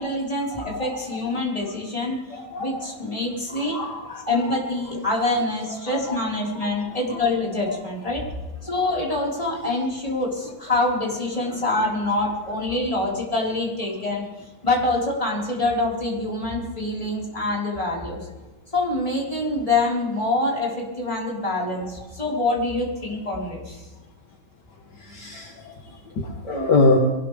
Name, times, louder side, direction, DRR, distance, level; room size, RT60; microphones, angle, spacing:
voice 1, 0.0-3.8 4.2-8.2 8.6-14.3 14.6-18.2 18.7-23.8 26.4-26.7, left 2 dB, 15° left, -4 dB, 4.5 m, -25 dB
voice 2, 0.6-1.8 2.5-6.2 6.5-8.2 8.9-9.2 9.7-9.9 10.7-11.2 11.6-11.8 12.2-12.4 12.6-12.8 21.8-22.1 25.0-27.0, left 3 dB, 60° left, 1 dB, 2.0 m, -29 dB
22.5 x 18.5 x 3.4 m, 1.1 s
omnidirectional pair, 2.1 m